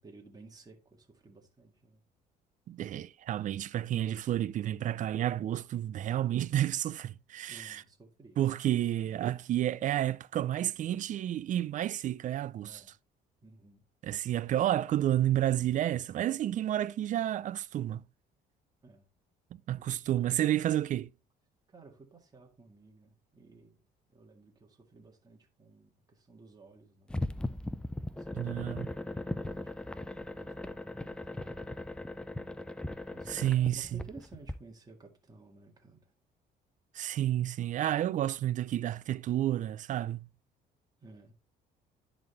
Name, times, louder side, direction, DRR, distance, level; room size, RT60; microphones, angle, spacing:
voice 1, 0.0-2.0 7.5-8.4 12.6-12.9 13.4-13.9 18.8-19.1 21.7-23.8 24.1-27.1 28.0-31.8 33.1-36.1 41.0-41.3, right 3 dB, 25° right, 2.0 m, -55 dB
voice 2, 2.7-7.8 8.4-12.8 14.0-18.0 19.7-21.1 28.4-28.9 33.3-34.0 36.9-40.3, right 12 dB, 50° right, 0.4 m, -30 dB
sound 1, 27.1-34.5, left 1 dB, 5° left, 0.5 m, -38 dB
10.5 x 4.2 x 4.0 m
cardioid pair, 110°, 17 cm